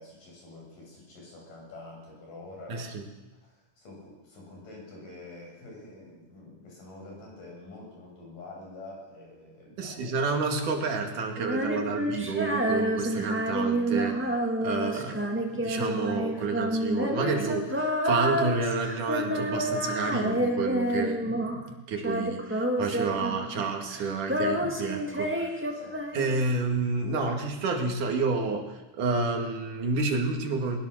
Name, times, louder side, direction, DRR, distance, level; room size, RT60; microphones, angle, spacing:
voice 1, 0.0-2.9 3.4-10.1 15.0-15.6 25.5-26.2, left 2 dB, 85° left, -1 dB, 8.5 m, -47 dB
voice 2, 2.7-3.0 9.8-14.3 14.6-25.6 26.1-30.8, right 4 dB, 75° right, 3 dB, 3.7 m, -30 dB
Female singing, 11.4-21.7 22.0-23.7 23.9-26.6, equal, 5° right, 1.0 m, -29 dB
21.0 x 20.0 x 6.5 m, 1.1 s
omnidirectional pair, 3.7 m